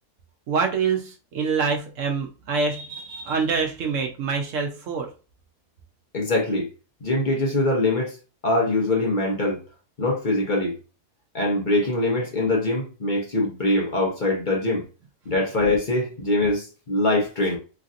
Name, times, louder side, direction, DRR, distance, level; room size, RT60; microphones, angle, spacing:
voice 1, 0.5-5.1, right 5 dB, 65° right, 0.8 m, -25 dB
voice 2, 6.1-6.7 7.0-8.2 8.4-9.6 10.0-10.8 11.3-14.8 15.3-17.6, left 2 dB, 40° left, 0.7 m, -23 dB
3.2 x 2.6 x 2.5 m
omnidirectional pair, 1.7 m